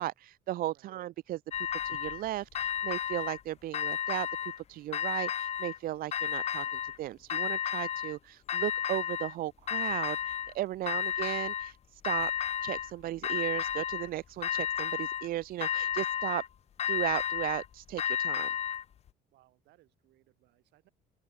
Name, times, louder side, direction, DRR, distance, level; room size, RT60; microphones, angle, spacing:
voice 1, 0.0-12.3 12.6-16.4 16.9-18.5, right 14 dB, 60° right, 0.4 m, -36 dB
sound 1, 1.5-2.2 2.6-3.4 3.7-4.6 4.9-5.8 6.1-7.0 7.3-8.2 8.5-9.3 9.7-10.5 10.9-11.7 12.0-12.9 13.2-14.1 14.4-15.3 15.6-16.5 16.8-18.8, left 9 dB, 40° left, 0.5 m, -32 dB
voice 2, 19.3-20.9, right 17 dB, 85° right, 7.3 m, -67 dB
open air
cardioid pair, 110°, 17 cm